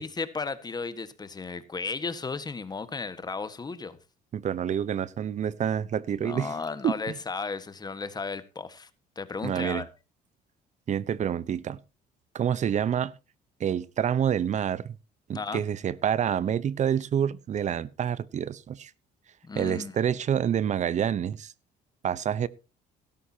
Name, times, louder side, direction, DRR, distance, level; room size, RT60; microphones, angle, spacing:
voice 1, 0.0-4.0 6.2-8.9 9.1-9.9 15.3-15.6 19.4-19.9, left 4 dB, 25° left, 1.5 m, -34 dB
voice 2, 4.3-6.5 6.8-6.9 9.4-9.8 10.9-11.8 12.3-13.1 13.6-14.9 15.3-18.9 19.6-21.5 22.0-22.5, right 9 dB, 45° right, 0.8 m, -27 dB
16.0 x 13.0 x 2.8 m
cardioid pair, 110°, 17 cm